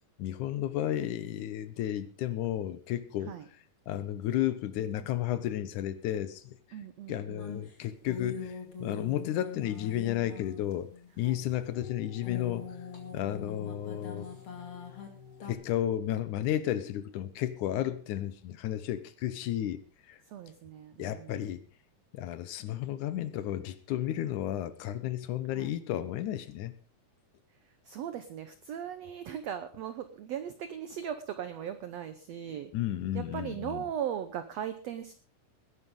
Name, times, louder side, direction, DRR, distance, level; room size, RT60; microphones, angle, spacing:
voice 1, 0.2-3.3 3.9-6.6 7.1-12.7 13.1-14.3 15.5-19.8 20.1-20.2 21.0-21.6 22.1-26.7 32.7-33.8, left 12 dB, 70° left, 2.1 m, -33 dB
voice 2, 6.7-7.5 11.2-11.4 13.2-13.8 20.2-21.5 25.5-25.8 27.5-32.7 33.1-35.1, right 9 dB, 75° right, 1.5 m, -39 dB
sound 1, 7.4-11.3 11.7-15.5, left 6 dB, 40° left, 2.8 m, -43 dB
20.0 x 11.0 x 3.7 m
omnidirectional pair, 4.0 m